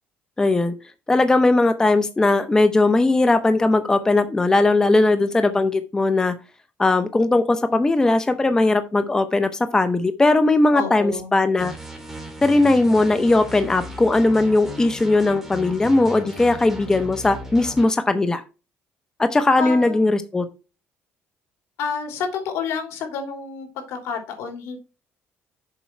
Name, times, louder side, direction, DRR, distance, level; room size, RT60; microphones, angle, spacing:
voice 1, 0.4-0.7 1.1-6.3 6.8-11.7 12.4-18.4 19.2-20.5, left 2 dB, 15° left, 10 dB, 0.7 m, -19 dB
voice 2, 10.7-11.3 19.5-20.0 21.8-24.8, left 5 dB, 80° left, 3 dB, 3.2 m, -29 dB
sound 1, 11.6-17.9, right 1 dB, 5° right, 2.5 m, -37 dB
7.2 x 5.3 x 4.5 m, 0.31 s
cardioid pair, 125°, 5 cm